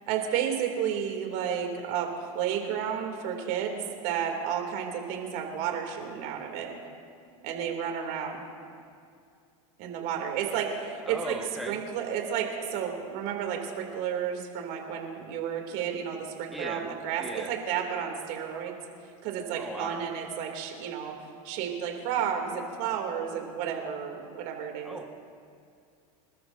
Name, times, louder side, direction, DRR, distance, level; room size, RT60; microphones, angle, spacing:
voice 1, 0.1-6.7 7.4-8.4 9.8-11.4 11.7-18.7 19.0-21.1 21.4-25.0, right 8 dB, 60° right, 2 dB, 2.8 m, -32 dB
voice 2, 11.0-11.8 16.5-16.9 17.2-17.5 19.6-20.1 24.8-25.1, right 2 dB, ahead, -1 dB, 1.5 m, -37 dB
25.5 x 13.5 x 2.7 m, 2.4 s
supercardioid pair, 110°, 19 cm